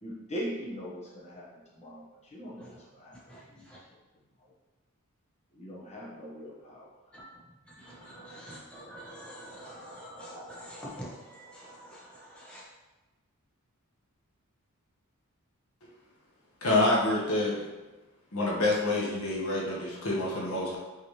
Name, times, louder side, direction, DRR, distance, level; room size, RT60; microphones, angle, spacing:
voice 1, 0.0-3.2 3.5-3.7 5.5-6.9, equal, 30° left, -5 dB, 1.3 m, -41 dB
voice 2, 3.3-3.8 7.1-7.3 7.6-12.6, equal, 5° left, -8 dB, 1.4 m, -46 dB
voice 3, 16.6-17.5 18.3-20.8, left 2 dB, 65° left, -4 dB, 1.5 m, -27 dB
5.8 x 5.0 x 3.3 m, 1.1 s
head